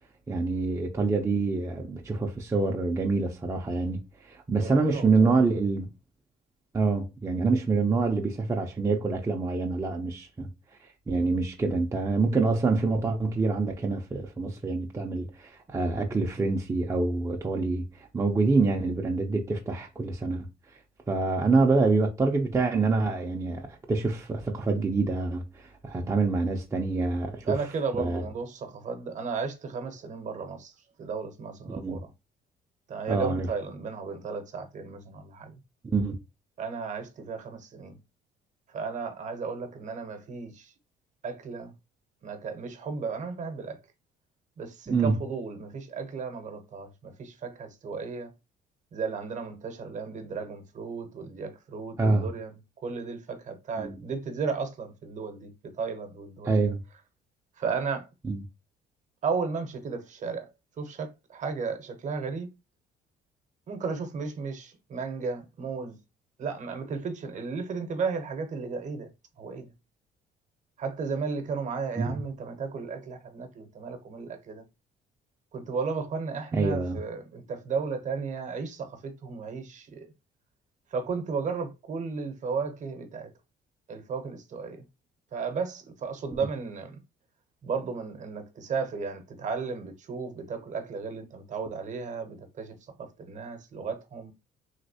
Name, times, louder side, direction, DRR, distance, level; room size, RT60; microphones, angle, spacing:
voice 1, 0.3-5.9 6.7-10.5 11.1-20.5 21.1-27.5 28.0-28.2 31.7-32.0 33.1-33.5 35.8-36.2 44.9-45.2 52.0-52.3 53.8-54.0 56.4-56.8 58.2-58.4 72.0-72.2 76.5-77.0, right 3 dB, 15° right, 0.5 m, -26 dB
voice 2, 4.6-5.4 27.5-32.1 32.9-35.6 36.6-38.0 38.7-40.7 41.2-41.7 42.2-43.8 44.6-48.3 48.9-56.7 57.6-58.1 59.2-60.5 60.8-62.5 63.7-66.0 66.4-69.1 69.4-69.7 70.8-74.6 75.5-80.1 80.9-83.3 83.9-84.8 85.3-87.0 87.6-94.3, right 5 dB, 45° right, 0.8 m, -34 dB
3.2 x 2.9 x 2.7 m
cardioid pair, 110°, 17 cm